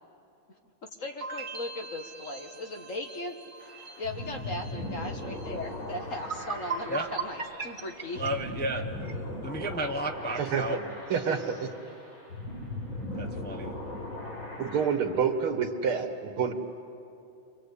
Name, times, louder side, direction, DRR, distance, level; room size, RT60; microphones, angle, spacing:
voice 1, 1.0-3.4 4.0-8.2, left 2 dB, 40° left, 3 dB, 1.7 m, -38 dB
sound 1, 1.2-6.2 6.5-7.2, right 3 dB, 50° right, 2.1 m, -46 dB
sound 2, 3.6-14.9, left 1 dB, 65° left, 6.7 m, -39 dB
sound 3, 5.7-5.8 6.1-9.2, right 5 dB, 70° right, 0.4 m, -37 dB
voice 2, 8.1-8.8 9.4-10.8 13.1-13.7, right 1 dB, 10° left, 3 dB, 0.6 m, -32 dB
voice 3, 10.4-11.7 14.6-16.5, right 6 dB, 90° right, 6 dB, 2.5 m, -28 dB
29.0 x 24.5 x 8.4 m, 2.7 s
omnidirectional pair, 2.3 m